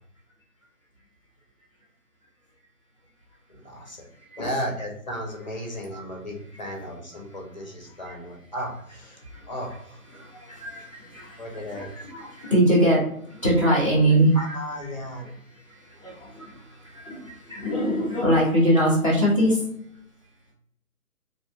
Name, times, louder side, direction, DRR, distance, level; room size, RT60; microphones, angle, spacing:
voice 1, 3.5-4.1 4.4-10.0 11.4-11.9 12.8-12.9 14.3-15.2 17.9-18.1, equal, 30° left, 0 dB, 0.5 m, -35 dB
voice 2, 10.1-14.6 15.1-15.3 15.7-19.6, right 1 dB, 25° right, -4 dB, 0.5 m, -23 dB
2.7 x 2.5 x 2.2 m, 0.71 s
figure-of-eight pair, 150°, 45 cm